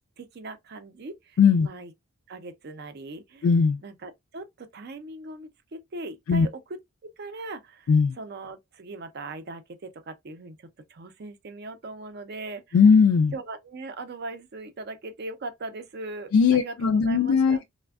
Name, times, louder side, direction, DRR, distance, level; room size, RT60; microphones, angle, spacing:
voice 1, 0.2-1.9 2.3-3.5 3.8-12.8 13.3-17.6, right 2 dB, 50° right, 0.4 m, -40 dB
voice 2, 1.4-1.7 3.4-3.8 6.3-6.5 7.9-8.2 12.7-13.3 16.3-17.7, left 5 dB, 70° left, 0.3 m, -19 dB
3.3 x 2.1 x 2.3 m
head